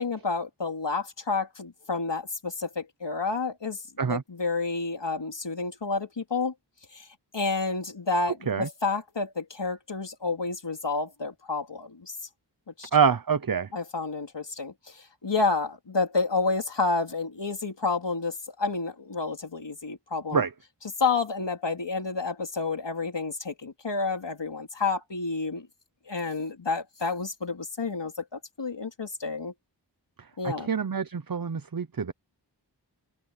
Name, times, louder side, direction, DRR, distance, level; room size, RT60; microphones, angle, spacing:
voice 1, 0.0-3.8 4.0-6.5 6.9-7.1 7.3-12.1 12.8-12.9 13.7-20.4 21.0-25.7 26.1-29.5 30.4-30.7, left 4 dB, 85° left, 3.6 m, -30 dB
voice 2, 12.9-13.7 20.3-20.5 30.4-32.1, right 6 dB, 55° right, 0.9 m, -25 dB
open air
wide cardioid pair, 60°, 42 cm